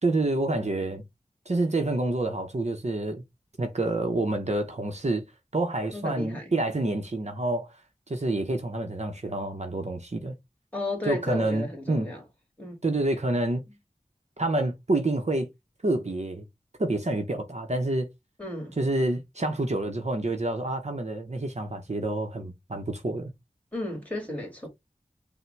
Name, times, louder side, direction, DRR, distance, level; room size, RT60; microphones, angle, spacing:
voice 1, 0.0-1.0 1.5-3.2 3.6-5.2 5.5-7.7 8.1-10.3 11.1-12.1 12.8-13.6 14.4-15.5 15.8-16.4 16.8-18.1 18.8-23.3, right 2 dB, 55° right, 0.8 m, -28 dB
voice 2, 5.9-6.5 10.7-12.2 12.6-12.8 18.4-18.8 23.7-24.7, left 2 dB, 10° left, 2.1 m, -33 dB
5.7 x 2.1 x 3.2 m
wide cardioid pair, 45°, 14 cm